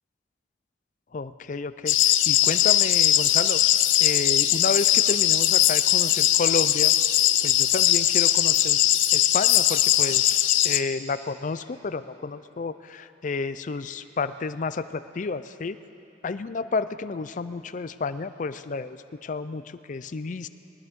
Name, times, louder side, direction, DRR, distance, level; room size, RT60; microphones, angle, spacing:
voice 1, 1.1-3.6 4.0-6.9 7.4-8.8 9.1-15.8 16.2-19.6 19.9-20.5, left 4 dB, 40° left, 13 dB, 0.4 m, -31 dB
sound 1, 1.9-10.8, left 12 dB, 85° left, 0.6 m, -20 dB
20.0 x 19.5 x 3.7 m, 2.9 s
head